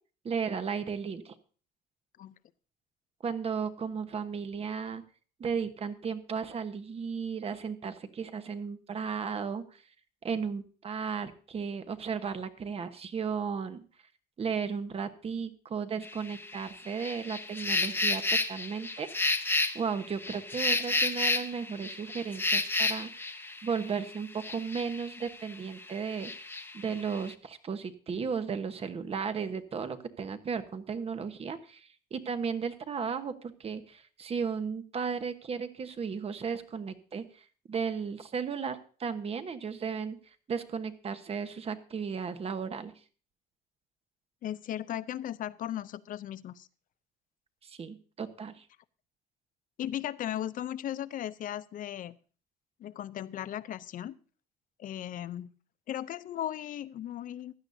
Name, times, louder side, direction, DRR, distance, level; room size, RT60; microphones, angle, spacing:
voice 1, 0.2-1.3 3.2-5.0 5.4-9.8 10.2-13.8 14.4-19.1 19.7-26.3 26.7-40.2 40.5-42.9 47.6-48.7, right 6 dB, 35° right, 10 dB, 1.1 m, -35 dB
sound 1, 16.0-25.5 25.8-27.3, left 2 dB, 15° left, 0.8 m, -31 dB
voice 2, 44.4-46.7 49.8-52.2 52.8-54.2 54.8-55.5 55.9-57.5, left 11 dB, 55° left, 16 dB, 0.6 m, -37 dB
16.0 x 11.0 x 2.7 m, 0.39 s
cardioid pair, 110°, 17 cm